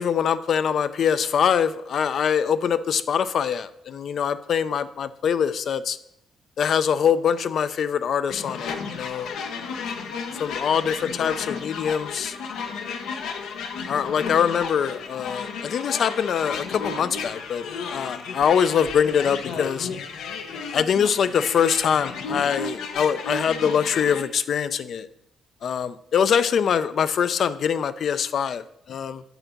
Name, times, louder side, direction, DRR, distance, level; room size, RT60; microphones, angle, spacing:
voice 1, 0.0-6.0 6.6-9.8 10.3-12.4 12.7-12.8 13.9-19.9 20.7-25.1 25.6-29.2, left 7 dB, 60° left, 13 dB, 0.4 m, -24 dB
sound 1, 8.3-24.2, left 5 dB, 80° left, 0.8 m, -33 dB
8.0 x 4.0 x 5.8 m, 0.78 s
cardioid pair, 90°, 0 cm